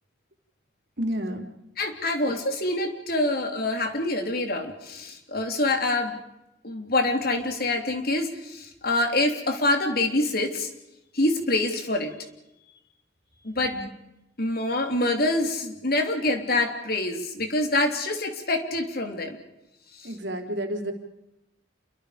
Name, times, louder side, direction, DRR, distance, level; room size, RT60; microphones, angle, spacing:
voice 1, 1.0-1.4 13.7-13.9 20.0-20.9, equal, 65° right, 4 dB, 3.6 m, -30 dB
voice 2, 1.8-6.2 6.6-10.7 11.1-12.1 13.4-13.8 14.4-19.4 19.9-20.1, left 2 dB, 50° left, 4 dB, 3.2 m, -26 dB
28.5 x 24.0 x 5.1 m, 0.90 s
head